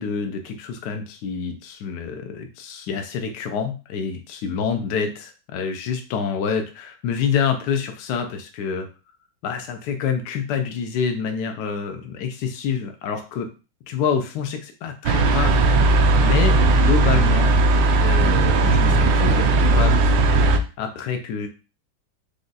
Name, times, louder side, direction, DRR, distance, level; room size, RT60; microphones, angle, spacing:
voice 1, 0.0-8.9 9.4-13.5 13.9-15.6 16.2-17.5 17.9-20.0 20.8-21.5, left 6 dB, 70° left, 5 dB, 1.0 m, -27 dB
sound 1, 15.0-20.6, right 2 dB, 75° right, 1.2 m, -17 dB
5.0 x 2.3 x 3.9 m, 0.33 s
omnidirectional pair, 2.1 m